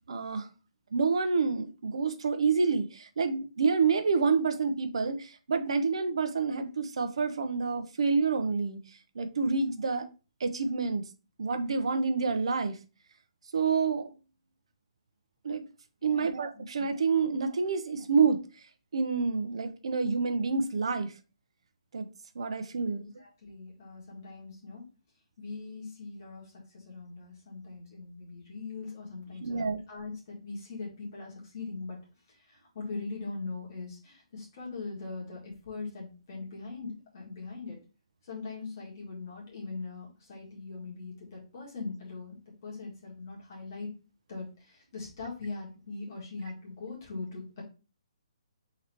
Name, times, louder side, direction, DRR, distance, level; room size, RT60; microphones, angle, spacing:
voice 1, 0.1-0.5 0.9-10.1 10.4-11.1 11.4-12.8 13.5-14.1 15.4-15.6 16.0-18.4 18.9-21.1 21.9-22.1 22.3-23.0 29.4-29.8, right 4 dB, 60° right, 0.7 m, -28 dB
voice 2, 16.0-16.6 23.0-24.8 25.4-32.0 32.3-37.8 38.2-43.9 44.3-47.6, left 3 dB, 35° left, 1.8 m, -41 dB
3.9 x 3.0 x 4.3 m
hypercardioid pair, 175°, 3 cm